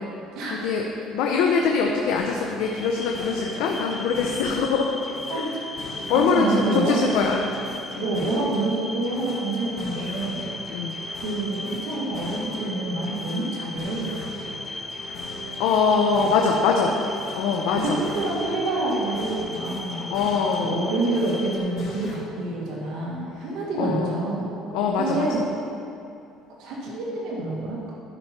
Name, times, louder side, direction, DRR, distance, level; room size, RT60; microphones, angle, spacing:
voice 1, 0.5-4.9 5.3-5.4 6.1-7.5 7.9-8.1 10.7-11.0 15.4-17.0 17.3-18.0 20.1-20.9 23.8-24.1 24.7-25.3, left 5 dB, 80° left, 1 dB, 0.7 m, -23 dB
sound 1, 2.1-4.7 5.0-8.7 9.0-12.7 13.0-16.7 17.0-20.7 21.0-22.1, left 2 dB, 50° left, 2.1 m, -40 dB
sound 2, 2.6-21.6, left 2 dB, 10° left, 0.8 m, -37 dB
voice 2, 6.1-7.0 8.0-10.5 11.2-14.1 17.7-20.1 20.6-24.5 25.0-25.4 26.6-27.9, right 2 dB, 70° right, -4 dB, 2.0 m, -27 dB
12.0 x 5.8 x 4.4 m, 2.6 s
cardioid pair, 120°, 0 cm